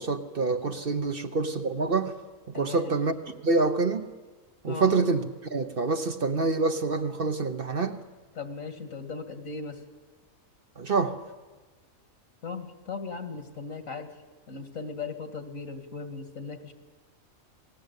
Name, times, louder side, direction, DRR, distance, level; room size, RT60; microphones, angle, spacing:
voice 1, 0.0-2.2 2.5-4.1 4.6-8.0 10.8-11.2, right 3 dB, 45° right, 7 dB, 1.1 m, -27 dB
voice 2, 2.5-2.9 4.7-4.9 8.4-9.8 12.4-14.2 14.5-16.7, left 4 dB, 70° left, 7 dB, 2.4 m, -37 dB
27.5 x 19.0 x 8.3 m, 1.3 s
omnidirectional pair, 1.4 m